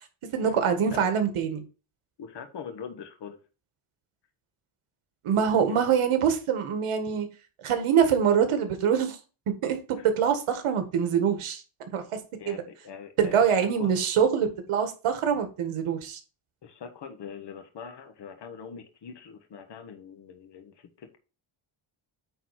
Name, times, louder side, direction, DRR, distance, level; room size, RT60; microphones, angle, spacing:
voice 1, 0.3-1.6 5.2-7.3 7.6-9.2 9.5-9.8 10.0-11.6 11.9-12.2 12.4-12.6 13.2-16.2, right 7 dB, 90° right, 7 dB, 1.7 m, -24 dB
voice 2, 2.2-3.4 5.7-5.9 12.4-13.5 13.8-13.9 16.6-21.2, left 6 dB, 55° left, 7 dB, 1.4 m, -42 dB
9.1 x 4.2 x 4.2 m, 0.33 s
cardioid pair, 135°, 49 cm